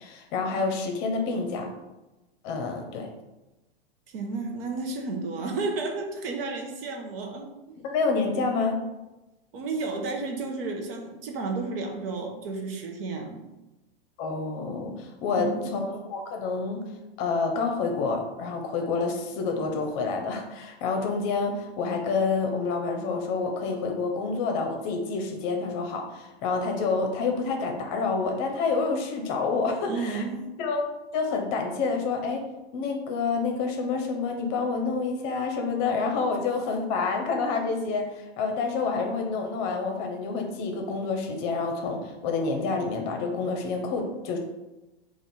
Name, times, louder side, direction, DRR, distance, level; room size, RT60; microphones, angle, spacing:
voice 1, 0.0-1.7 2.4-3.1 7.8-8.8 14.2-16.8 17.2-30.2 30.6-30.8 31.1-32.4 32.7-44.4, left 4 dB, 40° left, 3 dB, 0.7 m, -28 dB
voice 2, 4.1-7.8 9.5-13.4 15.4-15.7 29.9-30.5, right 3 dB, 65° right, 2 dB, 0.9 m, -32 dB
3.5 x 2.5 x 4.1 m, 1.0 s
hypercardioid pair, 130°, 31 cm